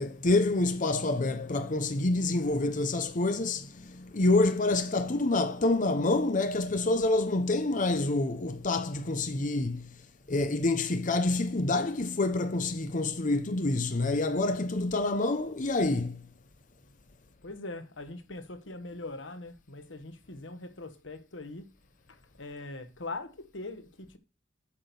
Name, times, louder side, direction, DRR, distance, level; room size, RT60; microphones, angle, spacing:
voice 1, 0.0-9.9 10.3-16.3, left 2 dB, 45° left, 0.8 m, -27 dB
voice 2, 17.4-21.7 22.1-24.2, left 2 dB, 90° left, 1.4 m, -42 dB
8.6 x 6.2 x 6.9 m
head